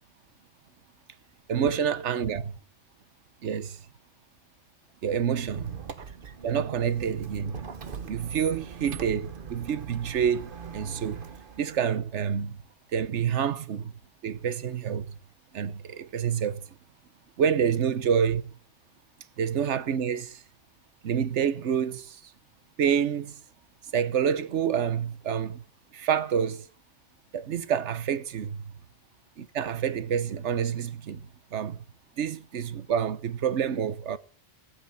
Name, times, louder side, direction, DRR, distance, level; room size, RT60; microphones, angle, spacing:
voice 1, 1.5-2.6 3.4-3.8 5.0-5.8 6.4-7.6 8.1-11.2 11.6-12.6 12.9-13.9 14.2-15.1 15.5-16.7 17.4-18.4 19.4-20.4 21.0-22.3 22.8-23.4 23.9-25.6 25.9-26.7 27.3-28.7 29.4-31.2 31.5-31.8 32.2-34.2, right 8 dB, 70° right, 1.2 m, -28 dB
Squeak, 5.4-11.8, right 6 dB, 45° right, 1.1 m, -41 dB
15.5 x 9.0 x 7.4 m
omnidirectional pair, 1.3 m